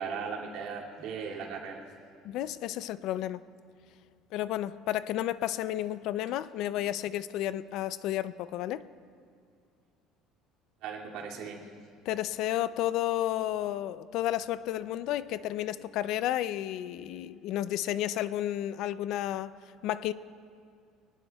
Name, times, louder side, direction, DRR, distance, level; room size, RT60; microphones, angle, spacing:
voice 1, 0.0-1.8 10.8-11.6, right 6 dB, 60° right, -2 dB, 2.4 m, -37 dB
voice 2, 2.2-3.4 4.3-8.8 12.1-19.5 19.8-20.1, left 13 dB, 55° left, 15 dB, 0.4 m, -32 dB
24.0 x 19.0 x 2.3 m, 2.2 s
cardioid pair, 170°, 0 cm